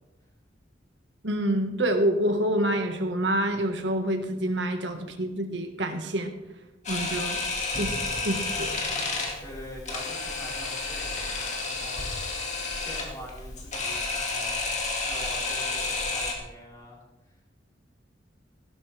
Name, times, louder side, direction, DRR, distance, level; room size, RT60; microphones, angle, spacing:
voice 1, 1.2-6.3 6.9-7.4 7.8-8.7, right 1 dB, 70° right, 5 dB, 1.7 m, -27 dB
Camera, 6.8-16.3, left 3 dB, 40° left, 2.4 m, -31 dB
voice 2, 9.4-12.1 12.7-14.7 15.0-17.0 17.2-17.4, left 1 dB, 20° left, -5 dB, 4.7 m, -44 dB
16.0 x 13.5 x 3.5 m, 1.0 s
head